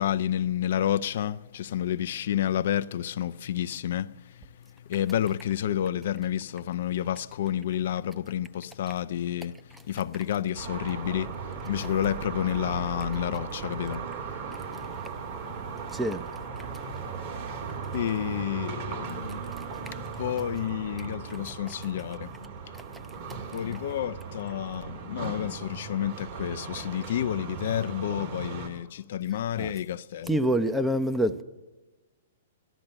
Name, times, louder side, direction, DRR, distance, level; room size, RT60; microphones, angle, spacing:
voice 1, 0.0-4.5 4.9-14.0 14.3-14.4 17.9-19.4 20.2-22.3 23.5-30.4, left 10 dB, 60° left, 0.4 m, -30 dB
sound 1, 10.5-28.7, right 5 dB, 50° right, 3.0 m, -37 dB
voice 2, 19.6-19.9 29.6-29.7 30.3-31.4, right 1 dB, 5° right, 0.7 m, -26 dB
14.0 x 12.0 x 7.9 m
hypercardioid pair, 120°, 0 cm